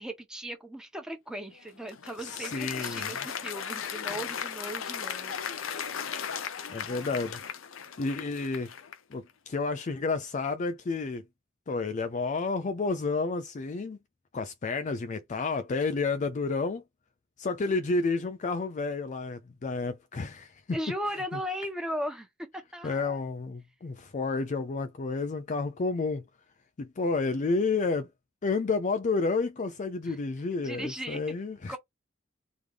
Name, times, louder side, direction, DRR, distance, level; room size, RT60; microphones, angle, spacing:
voice 1, 0.0-5.8 6.9-7.2 20.7-22.3 22.5-23.2 30.1-30.2 30.6-31.2 31.7-31.8, equal, 5° right, 1.1 m, -37 dB
Applause, 1.5-9.1, left 7 dB, 90° left, 0.7 m, -37 dB
voice 2, 2.2-3.1 6.7-7.4 8.0-8.7 9.1-11.2 11.7-14.0 14.3-16.8 17.4-20.8 22.8-26.2 26.8-28.1 28.4-31.8, left 3 dB, 40° left, 0.4 m, -30 dB
3.6 x 3.4 x 3.2 m
head